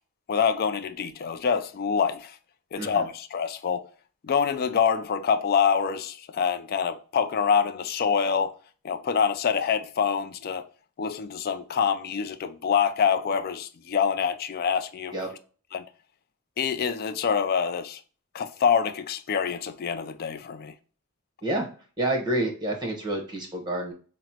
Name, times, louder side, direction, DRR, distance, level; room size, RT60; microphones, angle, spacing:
voice 1, 0.3-2.4 2.7-3.9 4.2-8.5 8.8-10.6 11.0-15.2 15.7-15.8 16.6-18.0 18.3-20.7, left 6 dB, 40° left, 0.3 m, -26 dB
voice 2, 22.0-23.9, right 1 dB, 20° right, 1.0 m, -28 dB
5.8 x 2.0 x 2.7 m
head